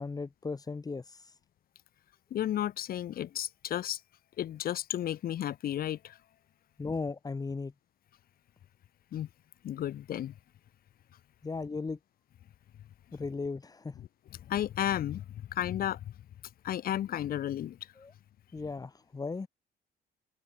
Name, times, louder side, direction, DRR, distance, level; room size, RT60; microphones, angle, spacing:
voice 1, 0.0-1.3 6.8-7.7 11.4-12.0 13.1-14.0 18.0-18.1 18.5-19.5, left 4 dB, 20° left, 2.6 m, -36 dB
voice 2, 2.3-4.0 4.4-6.2 9.1-9.3 9.6-10.3 14.4-16.0 16.6-17.8, left 11 dB, 60° left, 5.1 m, -33 dB
cardioid pair, 110°, 17 cm